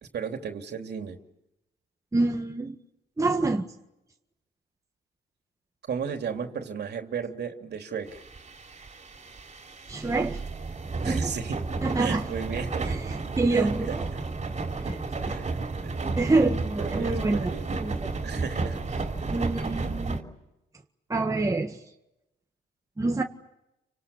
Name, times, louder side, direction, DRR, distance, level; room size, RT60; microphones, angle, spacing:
voice 1, 0.0-1.2 5.9-8.2 11.0-11.7 12.0-12.9 13.5-14.2 15.2-16.0 16.8-17.7 18.2-18.8 19.8-19.9, right 6 dB, 55° right, 5 dB, 3.2 m, -35 dB
voice 2, 2.1-2.8 3.2-3.7 9.9-10.4 11.1-11.3 11.8-12.2 12.9-13.0 13.4-14.1 14.9-15.0 16.2-17.5 17.8-17.9 19.3-20.2 21.1-21.8 23.0-23.2, right 3 dB, 15° right, 2 dB, 1.7 m, -26 dB
sound 1, 8.1-20.2, right 3 dB, 35° right, 3.8 m, -32 dB
29.5 x 25.5 x 7.3 m, 0.91 s
cardioid pair, 90°, 20 cm